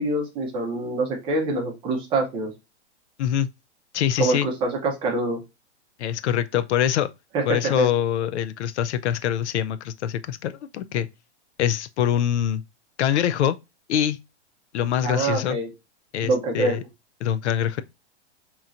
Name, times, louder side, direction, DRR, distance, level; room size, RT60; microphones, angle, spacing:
voice 1, 0.0-2.5 4.2-5.4 7.3-7.9 15.0-15.7 16.2-16.7, right 2 dB, 15° right, 0.7 m, -25 dB
voice 2, 3.9-4.5 6.0-7.1 7.5-11.1 11.6-12.6 13.0-13.6 13.9-14.2 14.7-15.6 16.1-16.8 17.2-17.8, left 10 dB, 75° left, 0.5 m, -24 dB
5.4 x 3.0 x 2.5 m
hypercardioid pair, 165°, 35 cm